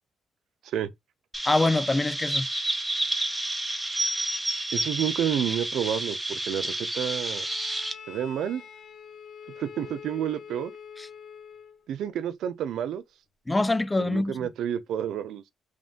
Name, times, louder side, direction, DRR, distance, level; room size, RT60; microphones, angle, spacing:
Chirp tweet, 1.3-7.9, right 1 dB, 10° right, 0.9 m, -30 dB
voice 1, 1.5-2.5 11.0-11.1 13.5-14.4, left 2 dB, 15° left, 0.4 m, -24 dB
voice 2, 4.7-7.4 8.1-8.6 9.6-10.7 11.9-13.0 14.0-15.4, right 10 dB, 75° right, 0.5 m, -30 dB
Bowed string instrument, 7.2-11.8, left 7 dB, 70° left, 1.3 m, -45 dB
3.6 x 2.5 x 3.7 m
cardioid pair, 90°, 0 cm